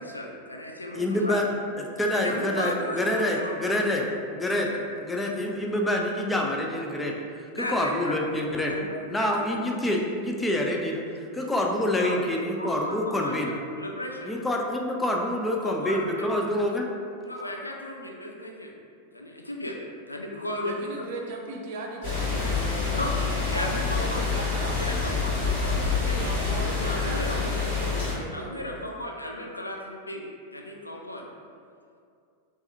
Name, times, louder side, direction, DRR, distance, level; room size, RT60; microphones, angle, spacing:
voice 1, 0.0-1.4 2.2-4.0 4.4-4.8 7.5-8.2 8.7-9.5 12.0-12.2 12.6-13.4 13.8-14.3 15.6-16.3 17.2-18.7 19.1-19.8 20.1-21.1 22.9-24.2 24.8-26.3 26.8-27.5 28.1-30.2 30.5-31.2, left 1 dB, 85° left, 1 dB, 0.4 m, -35 dB
voice 2, 0.9-1.5 1.8-4.1 4.3-4.7 5.0-7.1 7.5-8.7 9.1-13.5 14.2-16.9, left 1 dB, 10° left, 0 dB, 0.4 m, -27 dB
voice 3, 20.6-22.6 23.5-24.9 25.1-25.6 26.2-28.9, right 2 dB, 55° right, 0 dB, 0.5 m, -38 dB
sound 1, 22.0-28.1, left 4 dB, 55° left, 1.4 m, -27 dB
3.4 x 3.1 x 2.7 m, 2.4 s
figure-of-eight pair, 90°, 0 cm